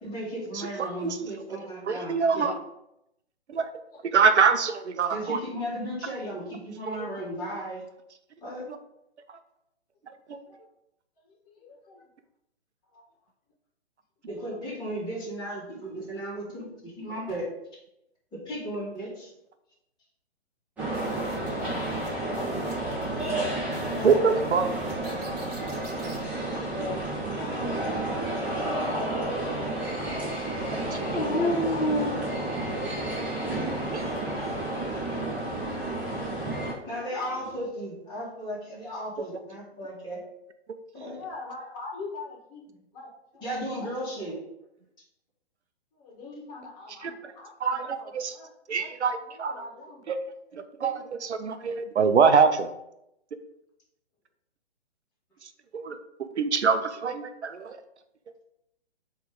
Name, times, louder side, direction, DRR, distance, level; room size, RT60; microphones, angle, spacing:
voice 1, 0.0-2.5 5.1-7.8 8.4-8.7 14.3-17.5 18.3-19.3 36.9-40.2 40.9-41.2 43.4-44.4, equal, 15° left, -8 dB, 2.5 m, -35 dB
voice 2, 0.5-1.3 1.9-2.6 3.5-3.7 4.1-5.4 6.0-6.1 6.9-7.1 8.6-8.8 9.3-9.4 10.3-10.4 24.0-24.7 30.7-31.0 33.9-34.0 39.2-39.3 46.9-47.1 47.6-48.4 48.7-49.6 50.1-50.2 50.5-52.7 55.7-56.0 56.3-57.8, right 5 dB, 90° right, 9 dB, 0.7 m, -25 dB
voice 3, 11.4-12.1 12.9-13.0 23.8-24.2 26.7-27.0 27.4-30.8 31.2-32.8 33.4-36.7 37.0-37.2 41.1-43.4 43.8-43.9 45.9-47.5 47.8-48.9 49.3-50.1, left 2 dB, 35° left, -2 dB, 1.9 m, -44 dB
sound 1, 20.8-36.7, right 1 dB, 5° right, 1.4 m, -31 dB
sound 2, 20.9-26.2, right 2 dB, 35° right, 1.9 m, -44 dB
Dog, 31.1-33.0 33.7-34.5 36.7-37.6, left 1 dB, 75° left, 1.3 m, -31 dB
7.7 x 3.4 x 3.8 m, 0.82 s
hypercardioid pair, 145°, 33 cm